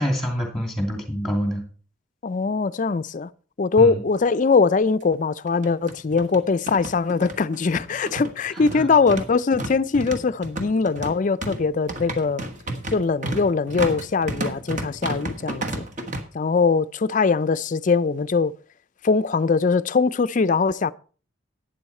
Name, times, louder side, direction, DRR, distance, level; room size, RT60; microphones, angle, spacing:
voice 1, 0.0-1.6 3.8-4.0 8.6-8.9, equal, ahead, 2.6 m, -26 dB
voice 2, 2.2-3.3 3.6-12.4 12.9-15.8 16.3-18.5 19.0-20.9, left 4 dB, 40° left, 0.4 m, -21 dB
sound 1, 4.2-4.3 4.5-4.6 5.5-16.2, right 2 dB, 40° right, 1.4 m, -32 dB
12.0 x 9.0 x 4.3 m
head